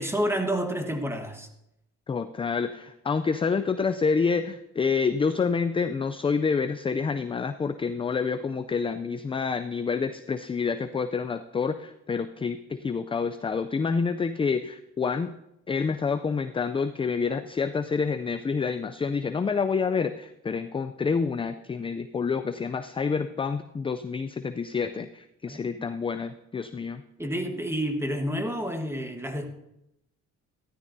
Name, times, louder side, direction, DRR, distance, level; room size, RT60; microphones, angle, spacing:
voice 1, 0.0-1.5 25.5-25.8 27.2-29.5, equal, 10° right, 5 dB, 1.4 m, -29 dB
voice 2, 2.1-15.3 15.7-27.0, left 5 dB, 20° left, 10 dB, 0.3 m, -28 dB
13.5 x 12.5 x 2.7 m, 0.85 s
cardioid pair, 90°, 30 cm